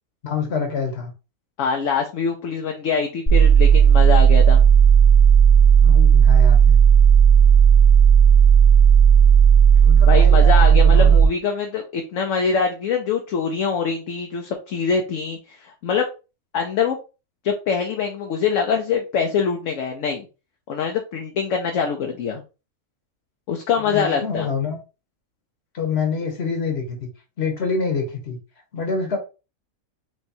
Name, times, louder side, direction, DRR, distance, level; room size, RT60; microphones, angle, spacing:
voice 1, 0.2-1.1 5.8-6.8 9.8-11.2 23.8-24.8 25.7-27.1 27.4-28.4 28.7-29.2, left 5 dB, 50° left, 1.3 m, -26 dB
voice 2, 1.6-4.6 10.1-16.1 16.5-17.0 17.4-20.3 20.7-22.4 23.5-24.5, left 6 dB, 65° left, 1.0 m, -24 dB
sound 1, 3.3-11.3, right 8 dB, 25° left, 0.8 m, -12 dB
4.6 x 3.1 x 2.8 m
omnidirectional pair, 1.5 m